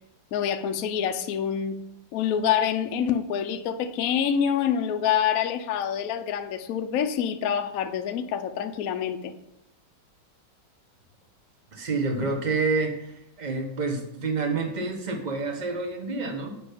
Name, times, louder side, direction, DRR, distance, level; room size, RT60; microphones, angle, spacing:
voice 1, 0.3-1.8 2.1-9.3, left 8 dB, 70° left, 7 dB, 0.8 m, -26 dB
voice 2, 11.7-13.1 13.4-16.5, right 3 dB, 30° right, 3 dB, 1.0 m, -28 dB
7.5 x 5.2 x 5.1 m, 0.89 s
omnidirectional pair, 2.2 m